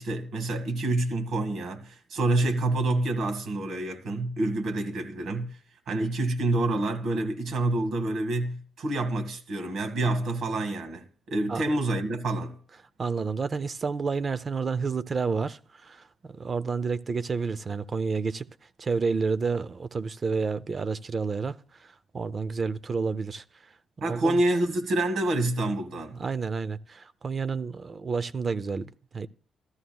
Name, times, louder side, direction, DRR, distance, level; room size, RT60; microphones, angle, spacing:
voice 1, 0.0-5.6 5.9-12.6 24.0-26.2, right 2 dB, 65° right, 1.9 m, -27 dB
voice 2, 13.0-18.5 18.8-21.6 22.1-23.4 24.0-24.4 26.1-29.3, right 5 dB, 35° right, 0.6 m, -30 dB
14.0 x 12.5 x 2.3 m
cardioid pair, 90°, 0 cm